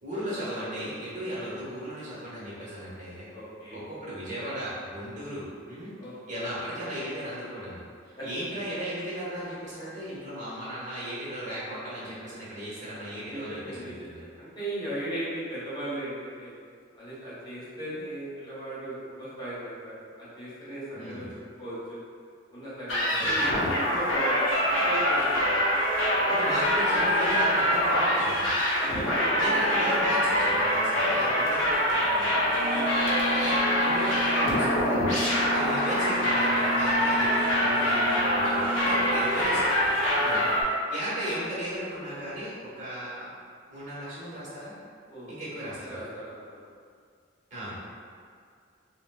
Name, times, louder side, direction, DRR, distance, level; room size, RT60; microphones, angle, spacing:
voice 1, 0.0-3.3 3.7-5.9 6.3-14.3 20.9-21.3 23.1-23.5 26.3-28.5 29.4-32.5 33.3-35.0 35.3-39.7 40.2-40.4 40.9-43.3 43.7-44.7 45.3-46.0 47.5-47.8, equal, 40° right, -9 dB, 1.0 m, -36 dB
voice 2, 3.3-3.8 6.0-6.4 8.2-8.3 13.2-16.5 17.0-21.3 21.6-22.0 22.5-24.4 24.7-25.6 26.2-26.3 26.6-27.3 28.0-28.3 28.8-30.1 31.3-31.5 32.6-32.9 38.6-39.2 40.2-40.5 45.1-45.3 45.6-46.6, right 1 dB, 20° left, -10 dB, 1.0 m, -38 dB
sound 1, 22.9-40.6, equal, 85° left, 0.7 m, -24 dB
Wind instrument woodwind instrument, 32.5-39.4, equal, 75° right, 0.3 m, -34 dB
4.2 x 2.1 x 2.3 m, 2.2 s
head